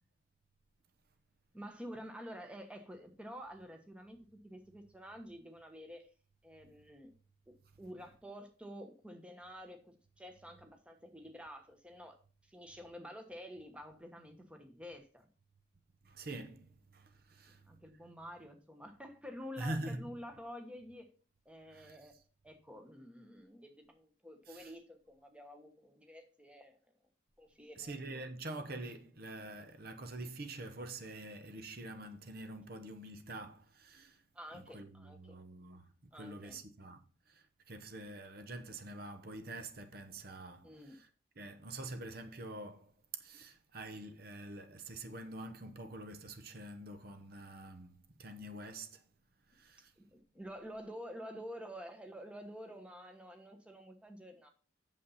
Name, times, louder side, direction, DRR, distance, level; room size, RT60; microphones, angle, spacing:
voice 1, 1.5-4.2 4.4-6.1 6.4-7.1 7.5-12.2 12.4-15.3 17.7-21.1 21.4-22.1 22.4-26.8 27.4-28.3 34.3-35.3 36.1-36.6 40.6-41.0 50.0-54.5, equal, 5° right, 1.2 m, -49 dB
voice 2, 16.0-17.7 19.6-20.1 21.7-22.0 24.5-24.7 27.8-34.2 34.5-37.0 37.3-41.1 41.4-49.0 49.5-49.9, right 2 dB, 50° right, 1.0 m, -46 dB
8.5 x 7.0 x 4.1 m
head